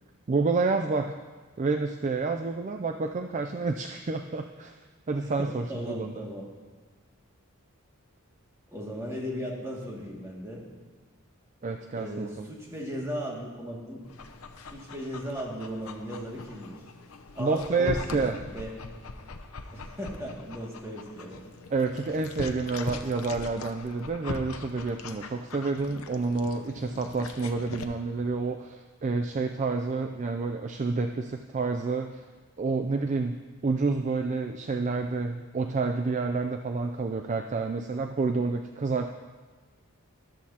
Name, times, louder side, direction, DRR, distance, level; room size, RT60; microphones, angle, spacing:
voice 1, 0.3-1.2 1.6-4.8 5.1-6.2 11.6-12.3 17.4-18.4 21.7-32.2 32.6-39.1, right 3 dB, 35° right, 5 dB, 0.4 m, -29 dB
voice 2, 5.2-6.5 8.7-10.6 12.0-14.1 14.7-16.8 17.3-18.7 19.7-21.4, equal, 15° right, -4 dB, 2.2 m, -37 dB
Dog, 14.0-27.8, left 3 dB, 85° left, 0.8 m, -41 dB
13.5 x 12.5 x 2.9 m, 1.4 s
head